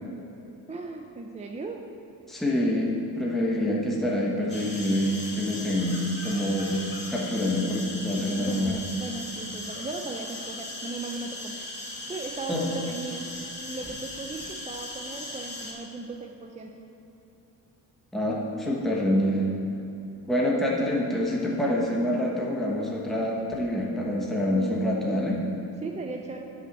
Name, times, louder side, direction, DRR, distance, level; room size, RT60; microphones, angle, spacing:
voice 1, 0.7-1.9 8.2-11.6 12.1-13.3 13.6-16.8 24.5-26.5, right 3 dB, 15° right, 2 dB, 0.5 m, -37 dB
voice 2, 2.3-8.8 12.5-12.6 18.1-19.5 20.3-25.4, left 1 dB, ahead, -3 dB, 1.1 m, -26 dB
sound 1, 4.5-15.7, left 2 dB, 25° left, 2.2 m, -38 dB
7.6 x 5.6 x 7.3 m, 2.9 s
cardioid pair, 125°, 40 cm